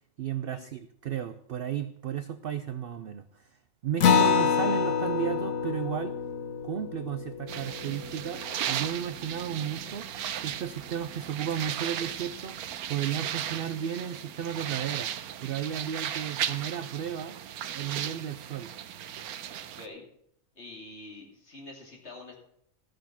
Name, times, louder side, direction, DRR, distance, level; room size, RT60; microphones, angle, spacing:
voice 1, 0.2-3.5 3.8-6.1 6.6-8.4 8.7-10.1 10.4-12.6 12.9-15.1 15.4-17.4 17.7-18.7, right 9 dB, 70° right, 12 dB, 0.5 m, -33 dB
Acoustic guitar, 4.0-8.9, left 7 dB, 70° left, 1.3 m, -27 dB
sound 1, 7.5-19.9, right 10 dB, 90° right, 1.2 m, -36 dB
voice 2, 19.7-20.0 20.5-22.3, left 2 dB, 50° left, 0 dB, 2.8 m, -46 dB
14.0 x 6.5 x 5.8 m, 0.69 s
omnidirectional pair, 1.5 m